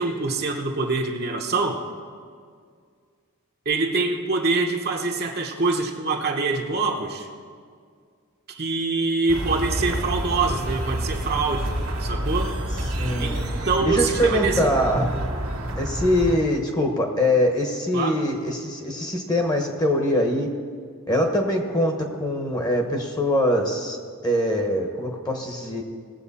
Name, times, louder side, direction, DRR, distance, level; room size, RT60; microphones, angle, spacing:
voice 1, 0.0-1.8 3.6-7.3 8.5-11.7 12.0-12.5 13.2-13.4 13.6-14.7 17.9-18.2, right 3 dB, 45° right, 2 dB, 0.9 m, -25 dB
sound 1, 9.3-16.4, right 1 dB, 80° right, 1.9 m, -28 dB
voice 2, 13.0-13.4 13.9-15.1 15.8-20.5 21.1-24.0 24.2-25.8, left 1 dB, 15° left, 3 dB, 1.0 m, -23 dB
19.0 x 7.7 x 4.2 m, 2.1 s
head